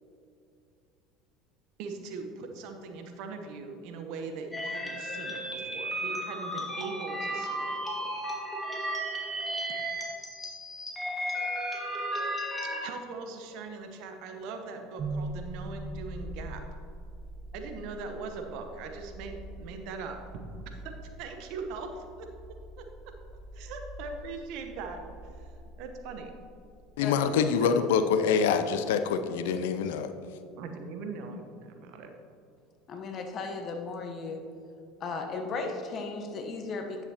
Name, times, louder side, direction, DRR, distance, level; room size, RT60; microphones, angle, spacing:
voice 1, 1.8-8.1 12.6-16.6 17.5-22.3 22.8-23.1 23.5-25.5 25.8-26.3 27.6-27.7 30.6-32.1, right 4 dB, 60° right, 5 dB, 0.9 m, -41 dB
sound 1, 4.5-12.8, right 1 dB, 10° left, 2.0 m, -34 dB
sound 2, 15.0-27.0, right 2 dB, 40° right, 0.7 m, -43 dB
voice 2, 27.0-30.1, left 6 dB, 75° left, 9 dB, 0.4 m, -25 dB
voice 3, 32.9-34.4 35.0-37.0, left 3 dB, 45° left, 4 dB, 1.1 m, -35 dB
10.0 x 7.2 x 2.9 m, 2.5 s
hypercardioid pair, 75°, 0 cm